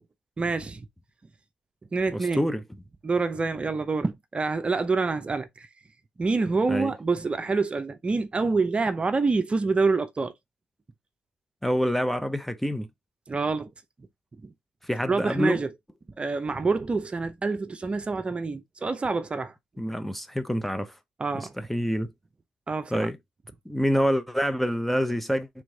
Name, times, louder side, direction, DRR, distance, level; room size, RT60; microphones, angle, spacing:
voice 1, 0.4-0.9 1.9-2.4 3.0-5.7 6.2-10.3 13.3-13.7 14.4-14.5 15.1-15.7 16.2-19.5 21.2-21.5 22.7-23.1, right 4 dB, 35° right, 0.6 m, -26 dB
voice 2, 2.1-2.6 6.7-6.9 11.6-12.9 14.8-15.6 19.8-20.9 21.3-22.1 22.9-23.2 23.7-25.5, equal, 5° left, 0.6 m, -26 dB
3.6 x 3.1 x 3.8 m
hypercardioid pair, 50°, 3 cm